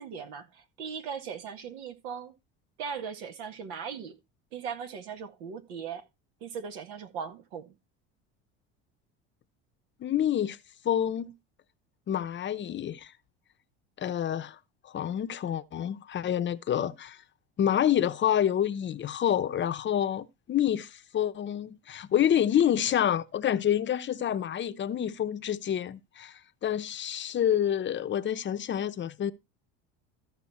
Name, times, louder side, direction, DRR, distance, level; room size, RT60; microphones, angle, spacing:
voice 1, 0.0-2.3 2.8-4.1 4.5-6.0 6.4-7.7, right 6 dB, 85° right, 1.8 m, -38 dB
voice 2, 10.0-10.6 10.8-11.3 12.1-13.1 14.0-14.6 14.8-17.2 17.6-29.3, left 10 dB, 35° left, 0.7 m, -28 dB
14.0 x 5.4 x 4.2 m
supercardioid pair, 95°, 32 cm